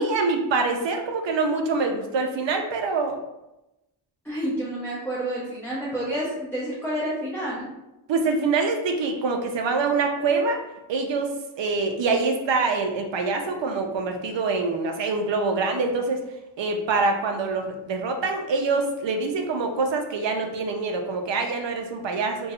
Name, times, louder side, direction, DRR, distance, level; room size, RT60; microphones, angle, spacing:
voice 1, 0.0-3.2 8.1-10.6 10.9-11.3 11.6-16.2 16.6-22.5, right 3 dB, 60° right, 4 dB, 0.5 m, -25 dB
voice 2, 4.2-7.7, right 1 dB, 5° left, -8 dB, 0.5 m, -29 dB
2.5 x 2.3 x 4.0 m, 0.95 s
wide cardioid pair, 175°, 50 cm